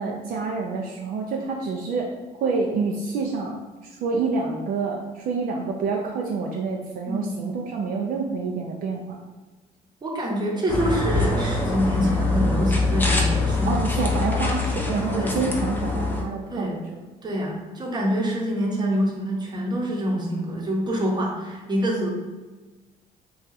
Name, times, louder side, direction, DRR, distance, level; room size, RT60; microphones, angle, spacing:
voice 1, 0.0-2.1 2.4-3.6 4.0-9.2 13.7-17.0, right 4 dB, 60° right, 0 dB, 0.4 m, -27 dB
voice 2, 7.0-7.4 10.0-13.8 15.2-15.4 16.5-16.8 17.2-22.1, equal, 25° right, -2 dB, 0.8 m, -26 dB
sound 1, 10.7-16.2, left 3 dB, 10° left, 0.5 m, -24 dB
2.7 x 2.3 x 3.8 m, 1.2 s
cardioid pair, 110°, 17 cm